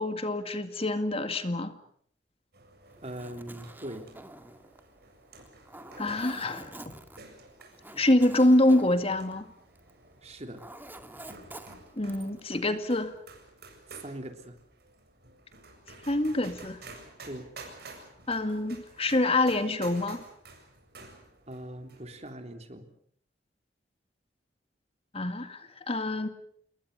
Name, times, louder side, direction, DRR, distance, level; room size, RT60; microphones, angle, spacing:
voice 1, 0.0-1.7 6.0-6.9 8.0-9.5 12.0-13.1 16.1-16.8 18.3-20.2 25.1-26.3, left 1 dB, 35° left, 9 dB, 2.1 m, -26 dB
sound 1, 2.5-22.3, right 3 dB, 60° right, 7.9 m, -52 dB
Zipper (clothing), 2.9-10.0 10.3-12.5, right 1 dB, 10° right, 2.0 m, -47 dB
voice 2, 3.0-4.1 10.2-10.6 13.9-14.6 17.2-17.5 21.5-22.9, right 1 dB, 35° right, 6 dB, 3.4 m, -41 dB
29.0 x 22.0 x 6.9 m, 0.63 s
head